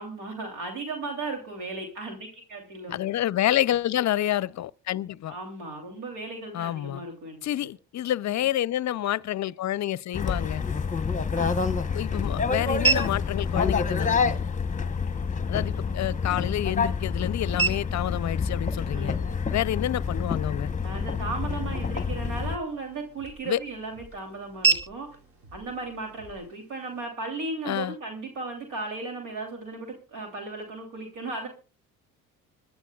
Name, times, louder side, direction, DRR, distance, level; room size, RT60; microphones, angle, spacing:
voice 1, 0.0-2.9 5.3-7.7 8.3-8.5 11.3-11.8 18.9-19.3 20.8-25.1 25.5-31.5, right 3 dB, 80° right, 3.1 m, -36 dB
voice 2, 2.9-5.4 6.5-7.0 7.4-10.6 11.9-14.3 15.5-19.1 19.5-20.7 23.5-23.6 27.7-27.9, left 12 dB, 40° left, 0.5 m, -28 dB
sound 1, 10.1-22.6, left 5 dB, 20° left, 0.9 m, -28 dB
sound 2, 11.1-27.1, right 4 dB, 35° right, 2.8 m, -35 dB
sound 3, 22.4-26.5, right 2 dB, 60° right, 3.0 m, -53 dB
25.5 x 11.5 x 2.3 m
supercardioid pair, 60°, 42 cm